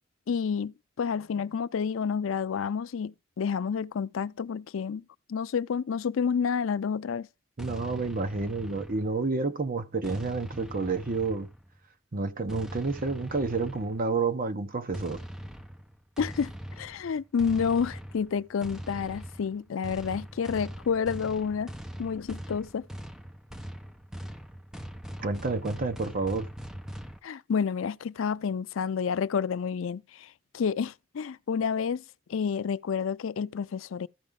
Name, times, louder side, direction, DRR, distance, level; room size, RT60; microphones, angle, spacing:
voice 1, 0.3-5.0 5.3-7.3 16.2-21.7 22.0-22.8 27.2-32.0 32.3-34.1, left 6 dB, 70° left, 0.4 m, -29 dB
sound 1, 7.6-9.4 10.0-11.8 12.5-14.1 14.9-27.2, equal, 5° right, 0.8 m, -41 dB
voice 2, 7.6-11.5 12.1-15.2 25.2-26.5, right 3 dB, 45° right, 0.9 m, -29 dB
14.5 x 4.9 x 3.6 m
head